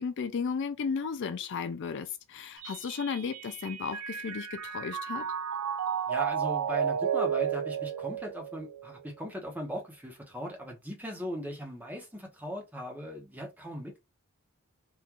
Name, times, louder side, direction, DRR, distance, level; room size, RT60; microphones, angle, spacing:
voice 1, 0.0-5.3, left 5 dB, 55° left, 0.4 m, -34 dB
Mallet percussion, 2.6-9.1, right 8 dB, 75° right, 0.5 m, -33 dB
voice 2, 6.1-14.0, right 1 dB, 10° right, 0.9 m, -38 dB
3.7 x 2.4 x 2.9 m
head